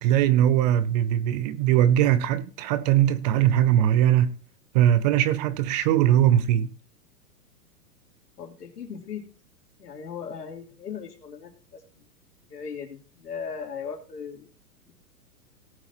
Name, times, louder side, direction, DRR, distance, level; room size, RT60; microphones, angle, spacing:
voice 1, 0.0-4.4 4.7-6.7, right 11 dB, 30° right, 0.4 m, -21 dB
voice 2, 8.4-9.3 9.8-12.1 12.5-14.5, left 6 dB, 80° left, 3.3 m, -38 dB
18.0 x 8.0 x 3.0 m
hypercardioid pair, 120°, 47 cm